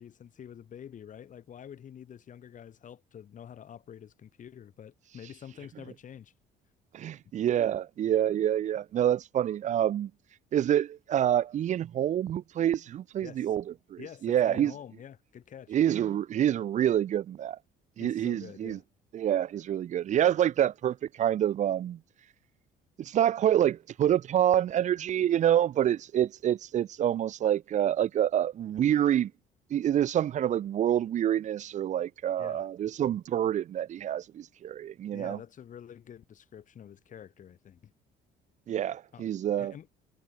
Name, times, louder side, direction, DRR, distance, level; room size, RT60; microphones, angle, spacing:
voice 1, 0.0-6.3 13.2-13.5 14.0-15.8 18.0-18.8 32.4-32.7 35.1-37.9 39.1-39.3 39.6-39.9, left 9 dB, 50° left, 4.8 m, -47 dB
voice 2, 6.9-10.1 10.5-13.6 13.9-14.7 15.7-17.6 18.0-18.8 19.1-22.0 23.0-29.3 29.7-35.4 38.7-39.7, right 10 dB, 45° right, 0.6 m, -27 dB
cardioid pair, 110°, 17 cm